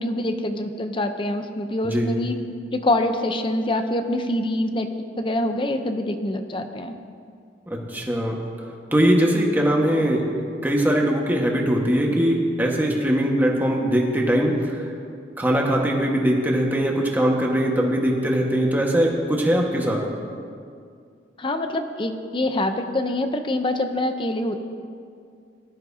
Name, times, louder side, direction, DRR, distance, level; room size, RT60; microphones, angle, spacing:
voice 1, 0.0-2.4 2.7-4.9 5.2-7.0 21.4-24.6, left 1 dB, 30° left, 7 dB, 0.7 m, -25 dB
voice 2, 7.7-8.4 8.9-10.2 10.6-14.8 15.4-20.0, equal, 10° right, -1 dB, 1.4 m, -21 dB
19.0 x 12.5 x 2.8 m, 2.3 s
head